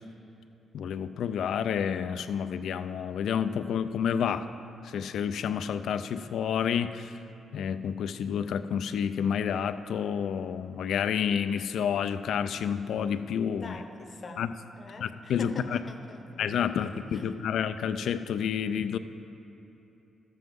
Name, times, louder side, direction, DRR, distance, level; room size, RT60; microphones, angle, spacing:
voice 1, 0.7-4.5 4.8-7.2 7.5-13.7 14.4-14.5 15.0-15.8 16.4-19.0, left 8 dB, 80° left, 11 dB, 0.4 m, -29 dB
voice 2, 13.5-14.5 14.8-17.5, left 3 dB, 45° left, 6 dB, 0.8 m, -44 dB
13.0 x 7.7 x 3.6 m, 2.9 s
cardioid pair, 85°, 0 cm